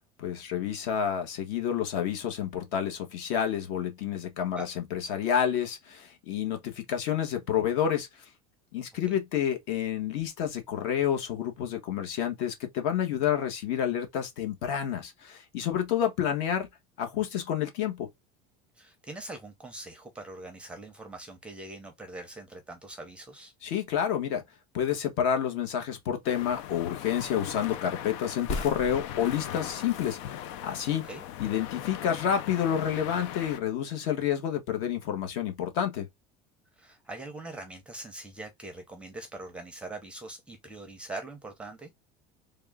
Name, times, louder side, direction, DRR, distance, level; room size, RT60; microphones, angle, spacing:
voice 1, 0.2-8.2 8.7-16.7 17.0-18.1 23.6-24.4 24.7-31.0 31.4-36.1, left 9 dB, 60° left, 1.2 m, -29 dB
voice 2, 18.8-23.5 30.9-31.2 36.8-41.9, right 2 dB, 5° right, 0.6 m, -42 dB
sound 1, 26.2-33.6, left 11 dB, 90° left, 0.5 m, -40 dB
sound 2, 26.9-32.5 32.8-32.9 33.1-34.0 34.3-34.5, left 3 dB, 45° left, 0.8 m, -43 dB
3.5 x 2.3 x 3.5 m
cardioid pair, 180°, 16 cm